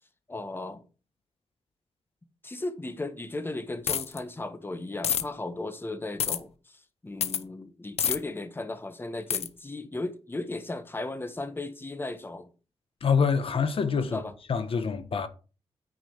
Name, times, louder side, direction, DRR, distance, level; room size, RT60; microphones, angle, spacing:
voice 1, 0.3-0.8 2.4-12.5 14.1-14.3, left 2 dB, 20° left, 1.2 m, -36 dB
sound 1, 3.9-4.2 5.0-5.2 6.2-6.4 7.2-7.4 8.0-8.2 9.3-9.5, left 8 dB, 85° left, 0.7 m, -27 dB
voice 2, 13.0-14.2 14.5-15.3, left 6 dB, 60° left, 1.0 m, -26 dB
9.4 x 5.1 x 5.0 m
cardioid pair, 90°, 10 cm